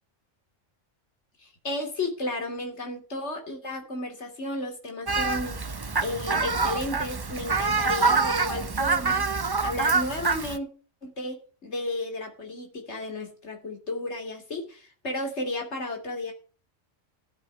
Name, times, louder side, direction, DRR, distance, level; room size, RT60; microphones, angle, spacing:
voice 1, 1.4-5.6 6.0-9.3 9.6-10.7 11.0-16.3, left 2 dB, 60° left, 3 dB, 3.2 m, -33 dB
Fowl, 5.1-10.6, right 4 dB, 30° right, 0.4 m, -26 dB
13.0 x 7.6 x 6.8 m, 0.38 s
omnidirectional pair, 1.3 m